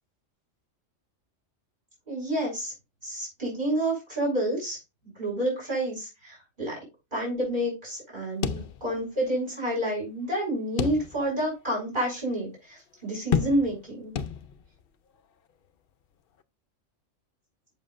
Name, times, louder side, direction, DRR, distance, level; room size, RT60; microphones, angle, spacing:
voice 1, 2.1-2.7 3.0-4.8 5.2-6.7 7.1-14.1, right 1 dB, 40° right, -3 dB, 5.6 m, -29 dB
sound 1, 8.4-9.3 9.6-9.7 10.8-11.4 11.9-12.0 13.3-13.9 14.2-14.8, left 7 dB, 55° left, 0.7 m, -30 dB
7.5 x 7.5 x 2.5 m, 0.25 s
omnidirectional pair, 1.4 m